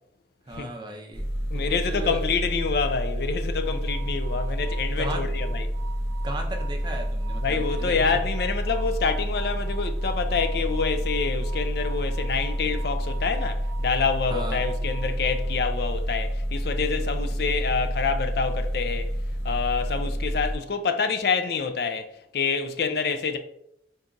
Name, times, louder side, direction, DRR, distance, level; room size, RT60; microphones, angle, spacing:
voice 1, 0.5-2.3 5.0-5.3 6.2-8.1 14.3-14.6, right 1 dB, 25° right, 0.5 m, -36 dB
sound 1, 1.1-20.5, equal, 85° left, 1.0 m, -29 dB
voice 2, 1.5-5.7 7.4-19.1 19.4-23.4, left 5 dB, 60° left, 0.4 m, -27 dB
sound 2, 3.6-15.8, right 10 dB, 85° right, 0.7 m, -46 dB
4.0 x 2.3 x 3.8 m
head